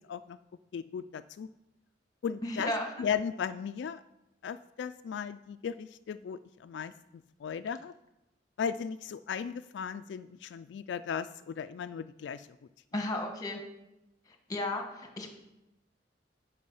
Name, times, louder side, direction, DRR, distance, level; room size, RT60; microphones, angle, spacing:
voice 1, 0.7-1.5 2.2-2.7 3.0-4.0 4.4-6.9 7.4-7.9 8.6-12.5, left 7 dB, 75° left, 11 dB, 0.3 m, -36 dB
voice 2, 2.4-3.1 12.9-13.6 14.5-15.3, left 1 dB, 20° left, 4 dB, 1.4 m, -34 dB
9.5 x 5.5 x 5.5 m, 0.95 s
head